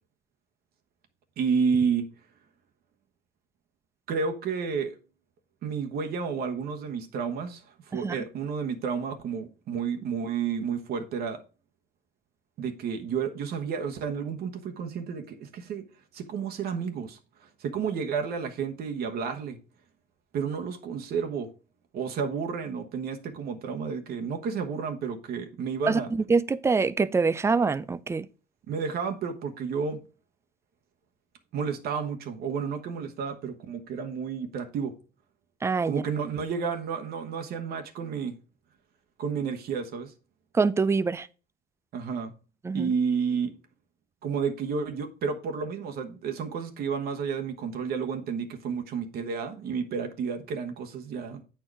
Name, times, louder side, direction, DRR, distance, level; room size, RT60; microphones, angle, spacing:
voice 1, 1.4-2.1 4.1-5.0 5.6-11.4 12.6-15.8 16.1-19.6 20.3-21.5 21.9-26.1 28.7-30.0 31.5-34.9 35.8-38.3 39.2-40.1 41.9-42.3 42.7-43.5 44.2-51.4, right 6 dB, 65° right, 1.1 m, -31 dB
voice 2, 25.9-28.3 35.6-36.0 40.5-41.3 42.6-42.9, right 4 dB, 15° right, 0.4 m, -25 dB
8.5 x 4.5 x 4.6 m
cardioid pair, 110°, 17 cm